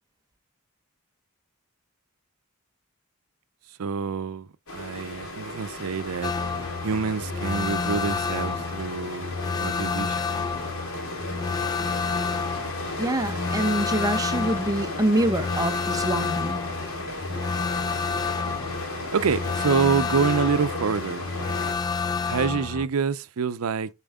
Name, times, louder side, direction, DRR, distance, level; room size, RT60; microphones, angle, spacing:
voice 1, 3.8-6.3 6.8-10.5 19.1-21.3 22.2-23.9, right 5 dB, 80° right, 0.5 m, -27 dB
sound 1, 4.7-21.7, left 1 dB, 75° left, 2.4 m, -35 dB
sound 2, 6.2-22.9, left 5 dB, 20° left, 0.4 m, -30 dB
voice 2, 13.0-16.6, right 1 dB, 15° right, 0.7 m, -25 dB
9.0 x 4.4 x 3.6 m
head